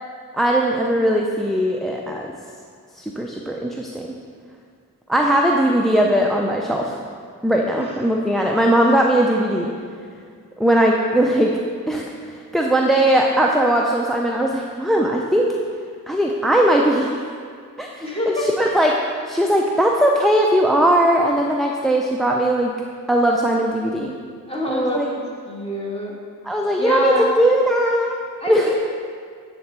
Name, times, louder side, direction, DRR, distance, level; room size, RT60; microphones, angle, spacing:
voice 1, 0.3-2.3 3.0-4.1 5.1-6.9 7.4-9.7 10.6-11.5 11.9-15.5 16.1-17.1 17.8-19.0 19.3-22.7 23.1-24.1 24.7-25.1 26.4-28.2 28.5-28.7, right 1 dB, ahead, 0 dB, 0.3 m, -19 dB
voice 2, 18.0-18.9 24.5-25.2 25.5-26.1 26.8-27.3 28.4-28.8, left 1 dB, 15° left, -3 dB, 1.4 m, -26 dB
9.5 x 3.4 x 4.3 m, 2.1 s
wide cardioid pair, 80°, 35 cm